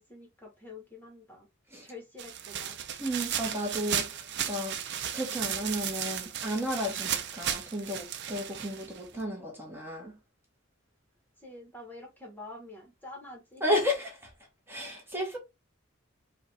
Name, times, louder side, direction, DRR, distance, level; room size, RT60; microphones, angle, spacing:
voice 1, 0.0-1.5 1.8-2.8 11.4-13.6, left 2 dB, 10° left, 1.3 m, -47 dB
sound 1, 2.2-9.2, right 9 dB, 55° right, 0.5 m, -35 dB
voice 2, 3.0-4.8 5.1-10.1 13.6-14.3 14.7-15.4, equal, 10° right, 1.2 m, -33 dB
4.9 x 2.5 x 3.3 m
head